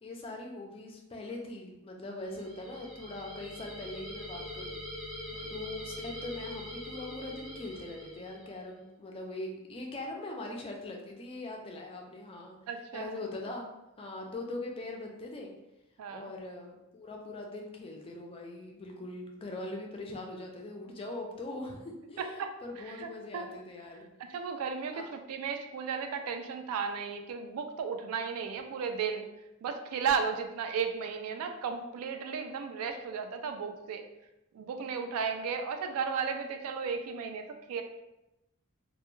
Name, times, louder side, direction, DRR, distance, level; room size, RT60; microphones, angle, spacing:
voice 1, 0.0-4.8 5.5-12.6 12.9-13.7 14.0-15.5 16.1-24.1 24.9-25.1, left 2 dB, 25° left, 1 dB, 0.3 m, -41 dB
sound 1, 2.2-8.6, left 1 dB, 65° right, 1.0 m, -43 dB
voice 2, 12.7-13.1 16.0-16.3 22.2-22.5 22.9-23.4 24.3-29.3 29.6-34.0 34.5-37.8, right 6 dB, 80° right, 7 dB, 0.3 m, -34 dB
2.1 x 2.1 x 3.0 m, 0.93 s
head